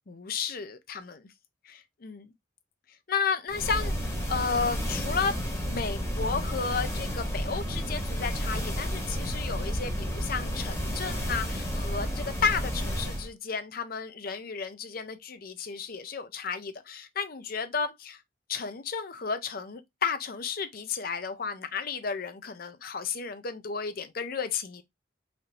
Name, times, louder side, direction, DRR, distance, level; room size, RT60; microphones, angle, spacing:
voice 1, 0.1-1.3 1.6-2.3 3.1-3.9 4.3-18.2 18.5-24.8, left 5 dB, 50° left, 0.6 m, -33 dB
sound 1, 3.5-13.3, equal, 15° left, 1.5 m, -31 dB
4.2 x 2.7 x 3.1 m
head